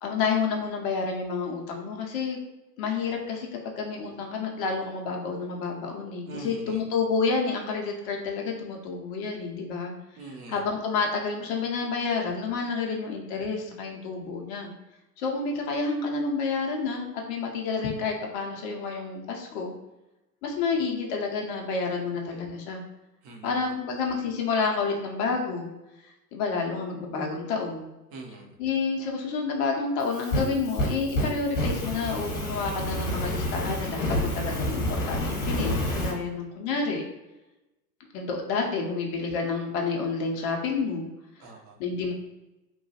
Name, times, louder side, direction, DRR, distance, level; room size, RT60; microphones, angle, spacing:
voice 1, 0.0-2.4 2.8-9.9 10.5-14.7 15.2-19.7 20.4-22.8 23.4-25.7 26.0-27.9 28.6-37.0 38.1-41.1 41.8-42.1, left 4 dB, 35° left, 1 dB, 0.5 m, -29 dB
voice 2, 6.3-6.8 10.2-10.7 23.2-23.6 28.1-28.6 41.4-41.8, right 3 dB, 30° right, 1 dB, 0.5 m, -42 dB
Fire, 30.0-36.1, left 1 dB, 50° left, 0.9 m, -29 dB
2.9 x 2.2 x 2.7 m, 1.0 s
figure-of-eight pair, 90°, 48 cm